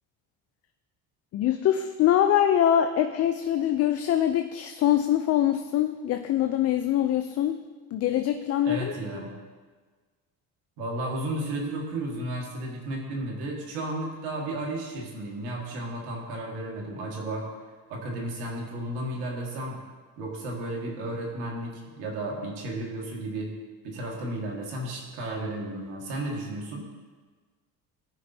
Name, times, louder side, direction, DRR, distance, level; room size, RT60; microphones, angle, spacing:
voice 1, 1.3-7.6 7.9-8.9, left 11 dB, 45° left, 7 dB, 0.4 m, -24 dB
voice 2, 8.6-9.3 10.8-17.5 17.9-19.8 20.2-23.5 23.8-26.8, right 1 dB, 85° right, -1 dB, 1.8 m, -33 dB
13.0 x 5.2 x 2.7 m, 1.4 s
cardioid pair, 115°, 37 cm